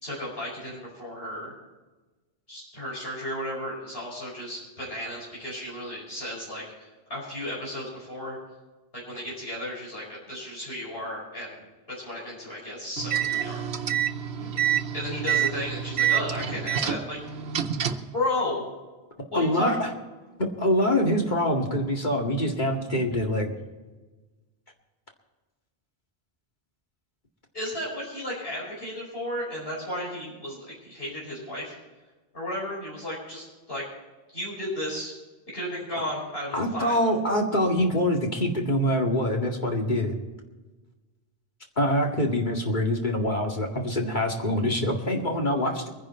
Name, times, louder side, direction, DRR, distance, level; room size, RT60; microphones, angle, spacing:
voice 1, 0.0-1.5 2.5-8.4 8.9-11.6 12.0-13.9 14.9-17.2 18.1-18.7 19.3-19.8 27.5-31.8 32.3-33.9 34.3-35.1 35.5-37.0, left 1 dB, 70° left, -6 dB, 5.4 m, -34 dB
sound 1, 13.0-18.1, right 10 dB, 90° right, 1.1 m, -27 dB
voice 2, 19.3-19.9 20.6-23.5 36.5-40.1 41.8-45.9, left 1 dB, 50° left, 1 dB, 2.2 m, -25 dB
23.5 x 10.5 x 4.3 m, 1.2 s
omnidirectional pair, 1.0 m